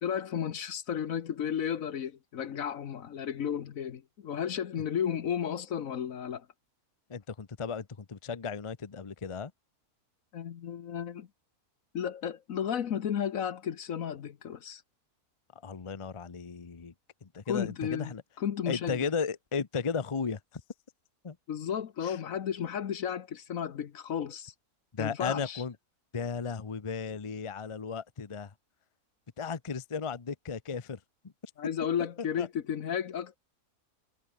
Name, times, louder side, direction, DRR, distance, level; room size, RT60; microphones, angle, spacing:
voice 1, 0.0-6.5 10.3-11.3 11.9-14.8 17.5-19.1 21.5-24.5 25.0-25.6 31.6-33.4, left 8 dB, 60° left, 1.3 m, -33 dB
voice 2, 7.1-9.5 15.6-16.9 17.2-18.2 18.7-20.6 21.2-21.4 22.0-22.2 24.9-25.7 26.1-28.5 29.4-31.0 32.4-32.5, left 5 dB, 25° left, 0.7 m, -35 dB
omnidirectional pair, 1.7 m